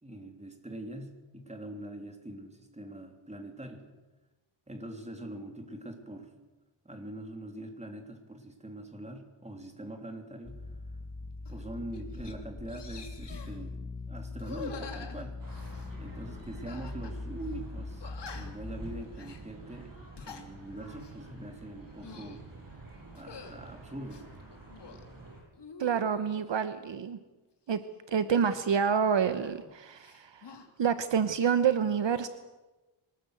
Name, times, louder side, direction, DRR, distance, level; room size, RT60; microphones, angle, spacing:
voice 1, 0.0-3.8 4.7-6.3 6.8-11.0 11.5-13.8 14.1-15.4 16.0-19.9 20.2-22.4 23.1-24.3, right 1 dB, 15° right, 4 dB, 3.1 m, -43 dB
sound 1, 10.4-19.0, left 3 dB, 35° left, 2.6 m, -42 dB
sound 2, 11.4-11.6 11.9-12.3 12.7-13.6 14.4-15.9 16.7-17.2 17.4-17.5 18.0-18.7 19.1-19.4 20.0-20.5 20.9-21.2 21.8-22.4 23.1-23.6 24.1-25.0 25.5-26.5 28.3-29.7 30.0-30.7, left 5 dB, 55° left, 2.9 m, -47 dB
sound 3, 15.4-25.4, right 3 dB, 40° right, 7.9 m, -49 dB
voice 2, 25.8-27.2 27.7-27.8 28.1-30.5 30.8-32.3, right 7 dB, 60° right, 11 dB, 1.1 m, -28 dB
23.5 x 19.5 x 8.0 m, 1.1 s
wide cardioid pair, 150°, 50 cm